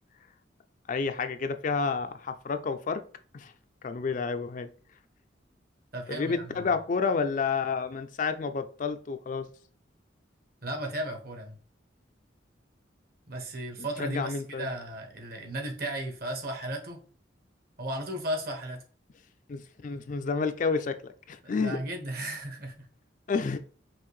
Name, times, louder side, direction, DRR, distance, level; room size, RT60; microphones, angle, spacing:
voice 1, 0.9-3.0 3.3-3.5 3.8-4.7 6.1-9.5 13.8-14.7 19.5-21.8 23.3-23.6, left 5 dB, 45° left, 9 dB, 0.4 m, -30 dB
voice 2, 5.9-6.7 10.6-11.6 13.3-17.0 17.8-18.8 21.4-22.9, right 1 dB, 50° right, 4 dB, 1.1 m, -35 dB
5.5 x 2.6 x 3.1 m, 0.44 s
head